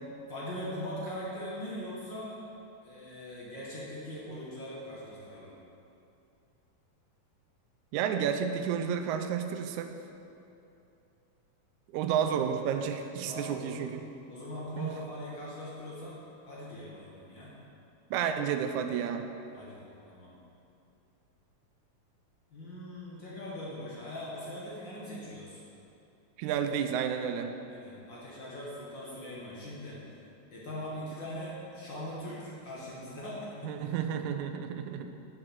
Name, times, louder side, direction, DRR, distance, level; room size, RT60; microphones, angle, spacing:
voice 1, 0.3-2.4 2.8-5.5 13.2-13.9 14.3-17.5 19.5-20.3 22.5-25.6 27.7-30.0 30.5-33.8, left 1 dB, 40° left, -7 dB, 2.1 m, -41 dB
voice 2, 7.9-9.9 11.9-14.0 14.8-14.9 18.1-19.2 26.4-27.5 33.6-35.1, right 8 dB, 80° right, 7 dB, 1.8 m, -31 dB
9.8 x 7.7 x 6.2 m, 2.7 s
omnidirectional pair, 3.8 m